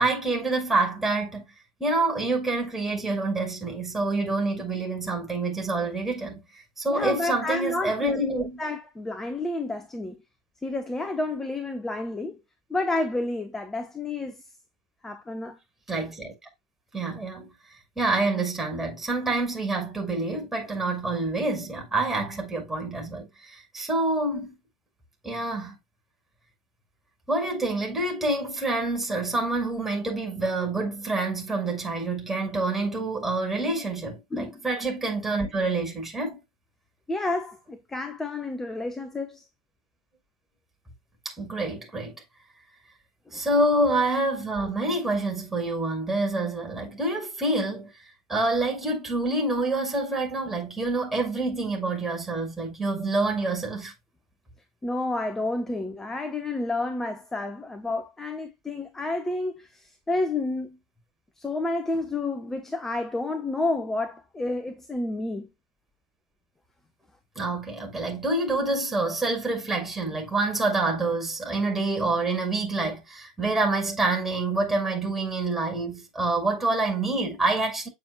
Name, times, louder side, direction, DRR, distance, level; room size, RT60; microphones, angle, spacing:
voice 1, 0.0-1.4 1.8-6.4 6.8-8.6 15.9-16.3 16.9-17.5 18.0-24.5 25.2-25.8 27.3-36.4 41.2-42.1 43.3-47.9 48.3-53.9 67.3-77.9, right 2 dB, 10° right, 6.2 m, -27 dB
voice 2, 6.9-10.2 10.6-12.4 12.7-14.4 15.0-15.6 34.3-34.6 37.1-39.4 43.3-43.4 54.8-60.8 61.4-65.5, left 2 dB, 10° left, 1.2 m, -30 dB
9.9 x 7.2 x 2.4 m
figure-of-eight pair, 90°, 3 cm